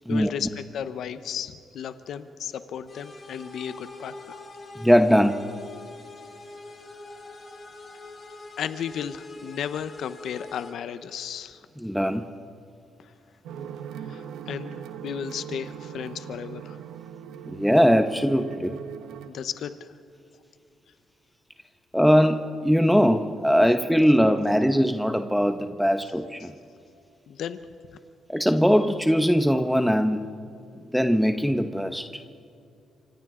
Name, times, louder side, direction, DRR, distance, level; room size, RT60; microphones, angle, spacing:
voice 1, 0.1-4.4 8.6-11.6 13.0-13.1 14.0-16.8 19.3-19.9 26.4-26.5 27.3-27.6, left 8 dB, 70° left, 11 dB, 0.8 m, -34 dB
sound 1, 2.9-10.7, left 3 dB, 40° left, 6.6 m, -44 dB
voice 2, 4.8-5.4 11.8-12.3 17.5-18.8 21.9-26.5 28.3-30.3 30.9-32.2, equal, ahead, 7 dB, 0.9 m, -21 dB
sound 2, 13.4-19.3, right 8 dB, 85° right, 1.2 m, -39 dB
27.5 x 25.5 x 3.8 m, 2.6 s
cardioid pair, 90°, 0 cm